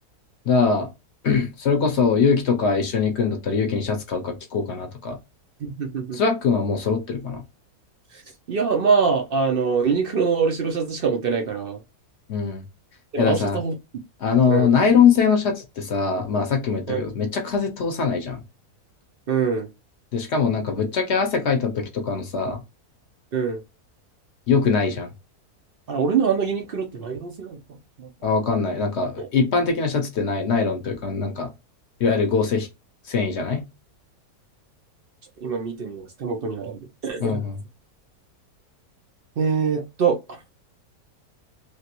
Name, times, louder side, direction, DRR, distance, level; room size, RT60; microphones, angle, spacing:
voice 1, 0.4-0.9 1.2-5.2 6.1-7.4 12.3-12.7 13.2-13.6 14.2-18.4 20.1-22.6 24.5-25.1 28.2-31.5 32.0-32.7 33.1-33.6 37.2-37.6, left 5 dB, 55° left, 0.8 m, -22 dB
voice 2, 5.6-6.2 8.1-8.2 8.5-11.8 13.1-13.7 14.5-14.8 16.9-17.0 19.3-19.7 23.3-23.6 25.9-28.1 29.2-29.3 35.4-37.5 39.4-40.4, right 5 dB, 65° right, 0.5 m, -24 dB
3.2 x 2.5 x 2.8 m
omnidirectional pair, 1.6 m